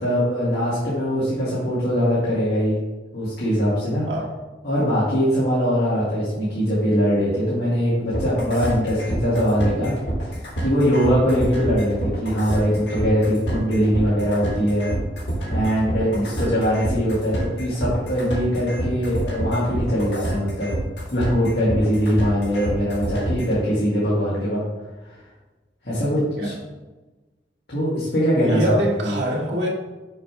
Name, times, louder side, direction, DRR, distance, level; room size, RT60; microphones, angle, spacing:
voice 1, 0.0-2.8 3.1-4.1 4.6-9.9 10.2-14.9 15.5-20.7 21.1-24.6 25.0-25.1 25.8-26.5 27.7-29.2, equal, 60° left, -9 dB, 2.1 m, -22 dB
sound 1, 8.1-23.6, right 1 dB, 80° left, 2.2 m, -27 dB
voice 2, 28.4-29.7, equal, 85° right, -2 dB, 1.6 m, -25 dB
6.6 x 3.3 x 5.8 m, 1.2 s
head